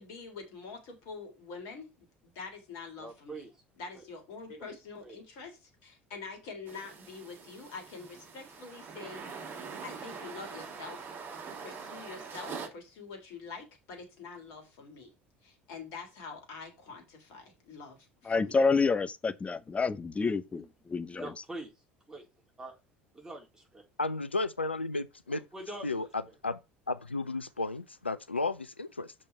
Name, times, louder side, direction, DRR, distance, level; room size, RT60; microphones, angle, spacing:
voice 1, 0.0-3.5 3.8-9.5 9.8-11.1 11.6-15.1 15.4-18.6, left 4 dB, 60° left, 3.2 m, -46 dB
voice 2, 3.0-3.5 3.9-4.0 4.6-4.7 5.0-5.2 20.2-20.6 21.1-21.7 22.1-22.3 22.6-22.8 23.1-23.8 25.3-26.1, right 2 dB, 10° right, 3.8 m, -44 dB
sound 1, 6.7-12.7, right 5 dB, 35° right, 2.2 m, -44 dB
voice 3, 18.3-21.3, left 4 dB, 20° left, 0.8 m, -28 dB
voice 4, 24.0-25.4 25.8-26.1 26.4-26.6 26.9-29.1, left 3 dB, 90° left, 0.4 m, -33 dB
6.7 x 5.4 x 4.5 m
figure-of-eight pair, 65°, 6 cm